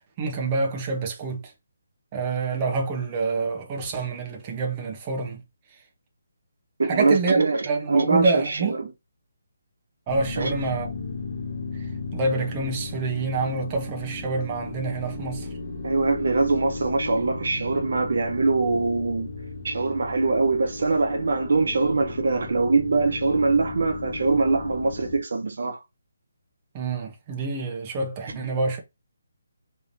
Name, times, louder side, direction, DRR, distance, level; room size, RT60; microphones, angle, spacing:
voice 1, 0.2-1.5 2.1-5.4 6.8-8.8 10.1-10.9 12.1-15.5 26.7-28.8, right 3 dB, 25° right, 1.2 m, -27 dB
voice 2, 6.8-8.8 10.4-10.5 15.8-19.3 19.6-25.8 28.3-28.4, right 3 dB, 65° right, 0.9 m, -23 dB
sound 1, 10.1-25.2, left 3 dB, 45° left, 1.8 m, -35 dB
4.9 x 3.5 x 2.8 m
hypercardioid pair, 160°, 0 cm